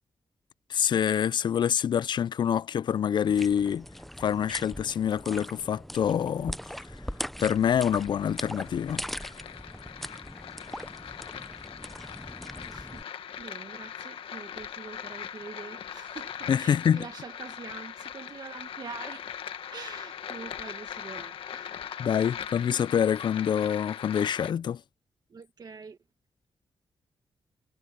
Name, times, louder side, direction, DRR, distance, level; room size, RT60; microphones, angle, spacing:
voice 1, 0.7-3.9 4.2-6.6 6.9-7.0 7.4-9.0 16.5-17.0 22.0-24.8, left 8 dB, 60° left, 0.4 m, -26 dB
sound 1, 3.2-13.0, equal, ahead, 0.6 m, -40 dB
sound 2, 7.2-24.5, left 9 dB, 85° left, 1.4 m, -41 dB
voice 2, 12.7-13.0 13.4-19.3 19.7-22.1 25.3-26.0, right 5 dB, 50° right, 1.9 m, -45 dB
cardioid pair, 100°, 9 cm